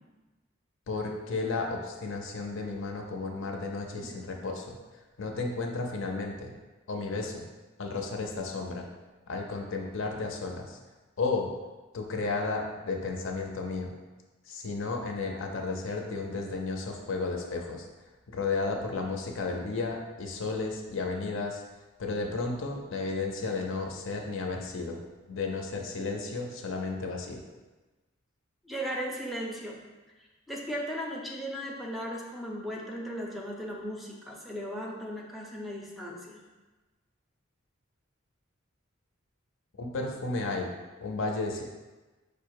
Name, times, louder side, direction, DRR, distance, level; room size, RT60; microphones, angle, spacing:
voice 1, 0.9-4.8 5.2-6.5 6.9-7.5 7.8-8.9 9.3-10.8 11.2-11.5 11.9-13.9 14.5-17.9 18.3-21.6 22.0-25.0 25.3-27.4 39.8-40.7 41.0-41.6, left 3 dB, 70° left, 2 dB, 0.6 m, -33 dB
voice 2, 28.6-29.8 30.5-36.4, equal, ahead, -2 dB, 0.5 m, -36 dB
4.9 x 2.1 x 4.6 m, 1.2 s
head